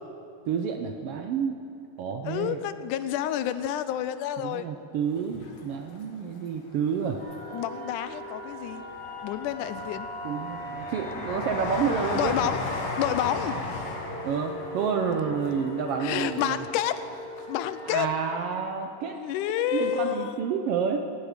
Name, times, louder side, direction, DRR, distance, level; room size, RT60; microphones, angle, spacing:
voice 1, 0.5-1.6 2.0-2.6 4.4-7.2 8.8-8.9 10.2-12.3 14.2-16.6 17.8-19.2 19.7-21.0, right 6 dB, 85° right, 5 dB, 1.3 m, -29 dB
voice 2, 2.3-4.7 7.5-8.8 9.2-10.1 12.2-12.6 13.0-13.6 16.0-17.0 17.5-18.1 19.1-20.4, left 11 dB, 85° left, 12 dB, 2.1 m, -29 dB
Train, 5.2-6.4 6.9-7.8 8.3-17.1 17.4-17.5, left 3 dB, 60° left, 2.8 m, -36 dB
sound 1, 7.2-18.1, equal, ahead, 4.3 m, -40 dB
17.0 x 8.2 x 8.9 m, 2.6 s
omnidirectional pair, 3.6 m